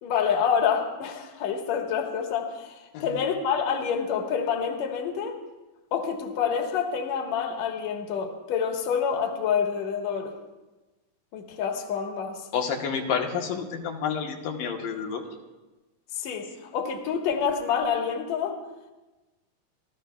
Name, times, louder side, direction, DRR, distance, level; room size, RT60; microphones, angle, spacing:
voice 1, 0.0-2.7 3.0-5.4 5.9-10.3 11.3-12.4 16.2-18.6, left 7 dB, 60° left, 2 dB, 2.4 m, -27 dB
voice 2, 12.5-15.2, left 6 dB, 85° left, 0 dB, 2.8 m, -29 dB
27.5 x 13.5 x 2.3 m, 1.1 s
omnidirectional pair, 3.8 m